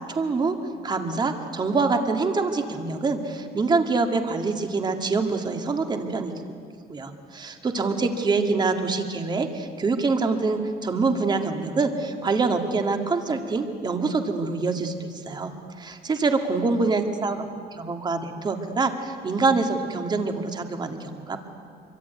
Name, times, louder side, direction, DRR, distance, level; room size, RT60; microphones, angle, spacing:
voice 1, 0.1-0.6 0.8-6.3 6.9-15.5 15.8-21.4, right 3 dB, 25° right, 5 dB, 2.1 m, -25 dB
26.0 x 24.0 x 9.5 m, 2.2 s
cardioid pair, 165°, 18 cm